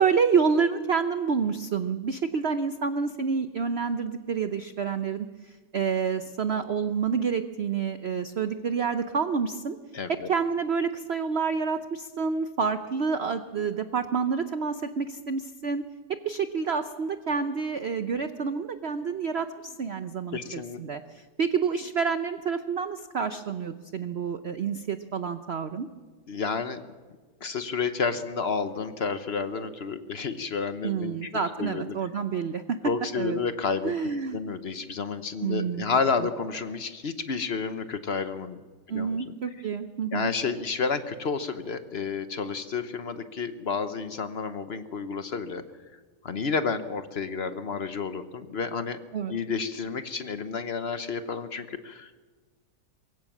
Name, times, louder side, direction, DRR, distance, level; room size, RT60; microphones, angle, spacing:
voice 1, 0.0-9.8 10.1-15.8 16.1-25.9 30.8-32.8 33.1-33.4 33.8-34.4 35.4-35.8 38.9-40.3 49.1-49.3, right 6 dB, 60° right, 9 dB, 0.6 m, -28 dB
voice 2, 9.9-10.3 20.3-20.8 26.3-26.8 27.4-31.3 31.6-31.8 32.8-33.9 34.3-38.6 38.9-39.3 40.1-45.6 46.2-49.0 49.3-52.3, left 5 dB, 50° left, 10 dB, 0.8 m, -30 dB
23.0 x 15.5 x 7.3 m, 1.4 s
omnidirectional pair, 2.0 m